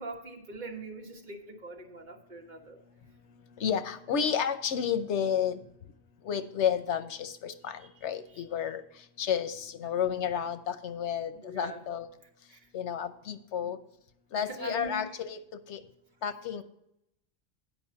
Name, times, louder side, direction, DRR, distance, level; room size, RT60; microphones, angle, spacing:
voice 1, 0.0-2.8 7.6-8.4 11.3-11.8 12.5-12.6 14.3-15.2, right 2 dB, 45° right, 1 dB, 1.6 m, -43 dB
voice 2, 3.6-5.6 6.3-8.8 9.2-12.1 12.7-13.8 14.3-15.4 15.7-15.8 16.2-16.6, left 8 dB, 85° left, 11 dB, 1.1 m, -31 dB
9.3 x 5.2 x 7.2 m, 0.77 s
omnidirectional pair, 1.1 m